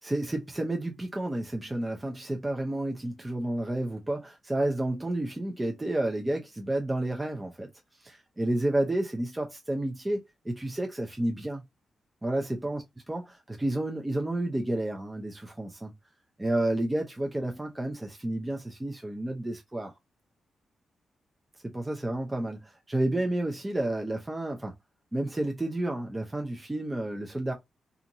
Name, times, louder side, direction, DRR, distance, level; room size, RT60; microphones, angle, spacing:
voice 1, 0.0-7.7 8.0-11.6 12.2-15.9 16.4-19.9 21.6-24.7 25.1-27.5, right 1 dB, 20° right, 0.6 m, -31 dB
2.6 x 2.5 x 2.8 m
cardioid pair, 70°, 0 cm